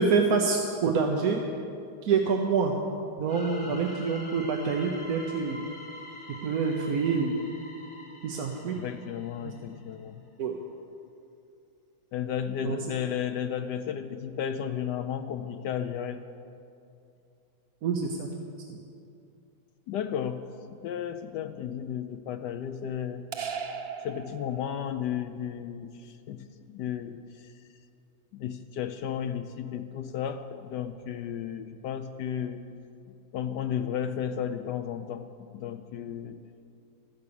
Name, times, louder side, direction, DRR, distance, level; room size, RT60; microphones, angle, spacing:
voice 1, 0.0-1.4 2.0-2.7 3.2-5.7 6.3-7.4 8.2-8.8 9.4-9.5 10.4-10.6 12.6-12.8 17.8-18.3 18.7-18.8, right 5 dB, 55° right, 2 dB, 1.2 m, -26 dB
sound 1, 3.3-9.9, left 1 dB, 30° left, 1.3 m, -46 dB
voice 2, 8.7-10.2 12.1-16.2 19.9-23.3 24.0-27.5 28.3-32.7 33.3-36.4, left 9 dB, 75° left, 9 dB, 1.0 m, -34 dB
sound 2, 23.3-25.0, right 6 dB, 70° right, 0.5 m, -37 dB
14.0 x 10.5 x 7.0 m, 2.5 s
omnidirectional pair, 2.2 m